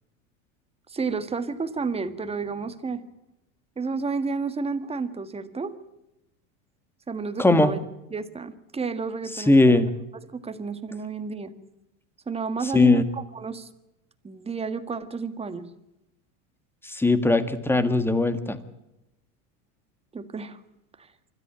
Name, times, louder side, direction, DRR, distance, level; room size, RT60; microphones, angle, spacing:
voice 1, 0.9-3.0 3.8-5.7 7.1-7.8 8.1-9.8 10.3-11.5 12.3-13.7 14.2-15.6 20.1-20.6, right 4 dB, 15° right, 10 dB, 1.6 m, -31 dB
voice 2, 7.4-7.7 9.3-9.9 12.7-13.0 16.8-18.6, left 2 dB, 5° left, 11 dB, 1.7 m, -19 dB
25.0 x 13.5 x 8.7 m, 0.92 s
supercardioid pair, 125°, 40 cm